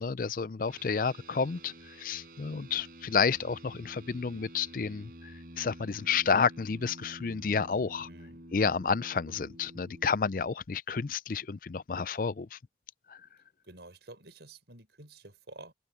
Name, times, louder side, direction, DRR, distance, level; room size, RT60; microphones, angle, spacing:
voice 1, 0.0-8.1 8.5-12.6 13.1-13.2, left 5 dB, 50° left, 0.4 m, -30 dB
sound 1, 0.7-10.1, right 1 dB, 55° right, 5.2 m, -50 dB
voice 2, 8.0-8.4 13.7-15.7, right 2 dB, 75° right, 4.7 m, -50 dB
head